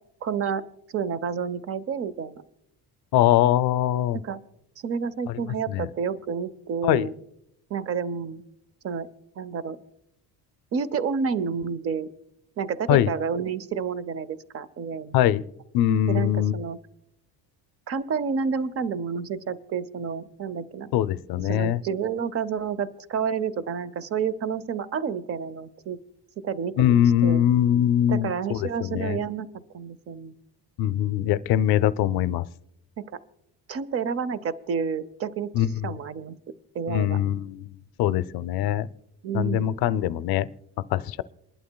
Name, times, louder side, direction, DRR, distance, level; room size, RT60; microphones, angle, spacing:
voice 1, 0.2-0.6 0.9-2.4 4.1-4.4 4.8-7.1 7.7-8.4 8.8-9.1 9.4-9.8 10.7-12.1 12.6-15.2 16.1-16.8 17.9-20.9 21.4-26.0 26.4-27.4 28.1-30.3 33.0-33.2 33.7-36.4 36.7-37.2 39.2-39.7, right 6 dB, 35° right, 17 dB, 0.5 m, -30 dB
voice 2, 3.1-4.2 5.7-5.9 6.8-7.1 12.9-13.1 15.1-15.4 15.7-16.6 20.9-21.8 26.8-29.2 30.8-32.5 35.5-36.0 36.9-37.7 38.0-38.9 39.3-40.5 40.9-41.2, left 11 dB, 65° left, 16 dB, 0.5 m, -22 dB
28.0 x 11.5 x 2.2 m, 0.81 s
cardioid pair, 160°, 41 cm